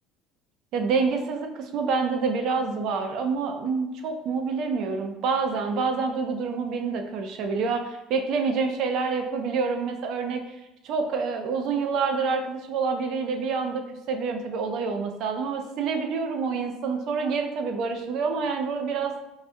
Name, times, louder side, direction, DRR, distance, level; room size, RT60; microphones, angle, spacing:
voice 1, 0.7-10.5 10.8-19.1, right 5 dB, 45° right, 5 dB, 0.4 m, -27 dB
4.8 x 2.2 x 2.6 m, 0.92 s
cardioid pair, 175°, 0 cm